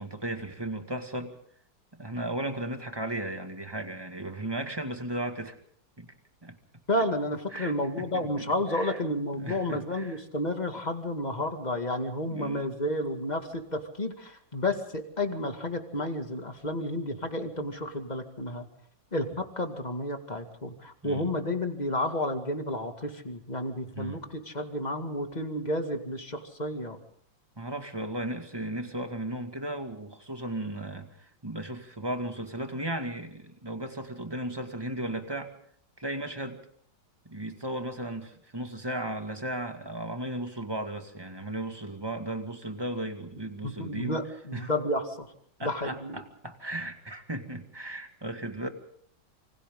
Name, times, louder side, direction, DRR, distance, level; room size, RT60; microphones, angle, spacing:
voice 1, 0.0-1.3 2.0-5.5 6.0-6.1 6.4-6.6 7.5-9.0 9.4-10.2 12.2-12.7 21.0-21.3 23.9-24.2 27.6-35.5 36.0-36.6 37.3-44.2 44.5-44.7 45.6-48.7, right 1 dB, 15° right, 5 dB, 2.0 m, -35 dB
voice 2, 6.9-18.7 19.1-27.0 43.6-45.3 45.6-46.2, left 1 dB, 20° left, 5 dB, 2.3 m, -31 dB
28.0 x 25.5 x 3.8 m, 0.64 s
omnidirectional pair, 2.0 m